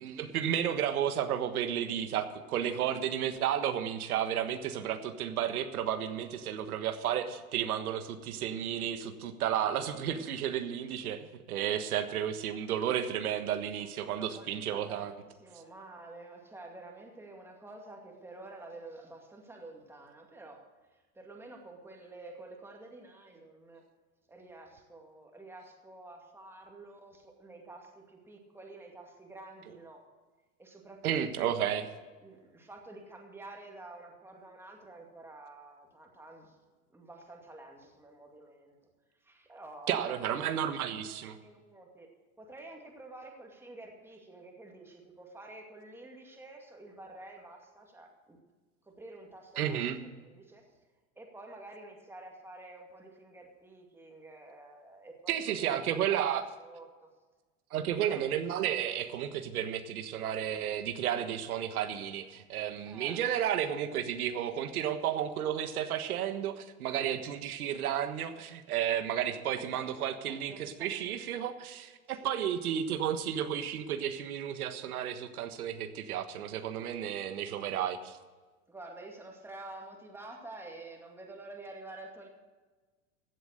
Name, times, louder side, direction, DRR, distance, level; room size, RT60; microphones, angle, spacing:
voice 1, 0.0-15.1 31.0-31.9 39.9-41.4 49.6-50.0 55.3-56.4 57.7-78.2, right 9 dB, 85° right, 8 dB, 1.5 m, -32 dB
voice 2, 13.8-15.1 15.4-23.8 24.3-30.0 30.6-31.6 32.2-36.6 36.9-38.7 39.2-42.1 42.4-48.4 48.8-50.7 51.2-55.3 55.7-56.2 56.6-57.1 57.7-58.2 62.9-63.2 69.6-69.8 70.2-70.9 72.1-72.3 78.7-82.3, right 2 dB, 5° right, 1 dB, 2.3 m, -49 dB
15.5 x 8.1 x 6.6 m, 1.3 s
supercardioid pair, 135°, 43 cm